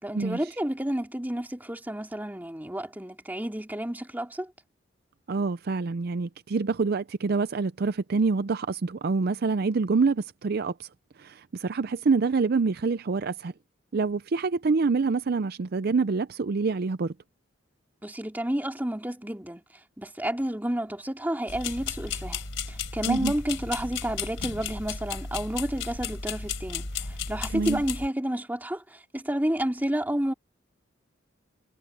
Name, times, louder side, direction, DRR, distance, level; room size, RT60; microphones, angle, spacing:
voice 1, 0.0-4.5 18.0-19.6 20.0-30.3, right 1 dB, 10° right, 2.6 m, -30 dB
voice 2, 5.3-10.9 11.2-13.5 13.9-17.1 23.1-23.3 27.5-27.8, right 4 dB, 50° right, 0.5 m, -26 dB
sound 1, 21.5-28.1, left 5 dB, 85° left, 3.7 m, -34 dB
head